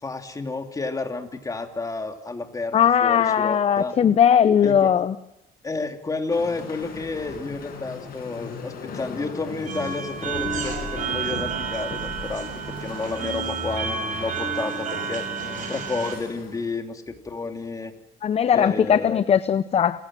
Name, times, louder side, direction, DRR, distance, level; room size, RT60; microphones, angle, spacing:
voice 1, 0.0-3.9 4.6-4.9 5.6-15.2 15.7-17.9 18.5-19.2, left 3 dB, 20° left, 5 dB, 2.9 m, -31 dB
voice 2, 2.7-5.1 18.2-20.0, left 8 dB, 35° left, 14 dB, 0.8 m, -19 dB
sound 1, 6.3-16.8, left 5 dB, 60° left, 7.3 m, -38 dB
sound 2, 9.6-16.2, right 6 dB, 50° right, 6.5 m, -30 dB
29.0 x 16.5 x 7.6 m, 0.84 s
cardioid pair, 110°, 17 cm